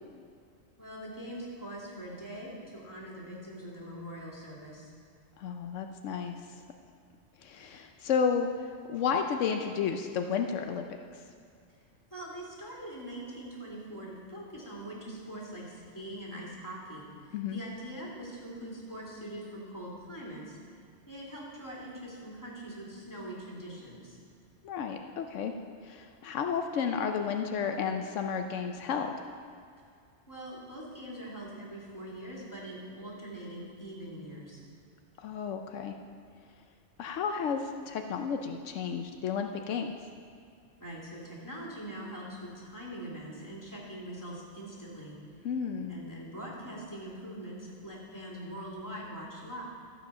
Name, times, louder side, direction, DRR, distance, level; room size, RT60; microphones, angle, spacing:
voice 1, 0.8-4.9 12.1-20.6 21.1-24.2 30.3-34.6 40.8-45.2 45.9-49.6, right 1 dB, 15° left, -5 dB, 2.7 m, -43 dB
voice 2, 5.4-6.6 7.4-10.8 11.1-11.2 17.3-17.6 24.6-25.5 25.8-29.3 35.2-35.9 37.0-39.9 45.4-46.0, left 6 dB, 80° left, 5 dB, 1.0 m, -32 dB
13.0 x 7.5 x 5.6 m, 2.3 s
omnidirectional pair, 1.3 m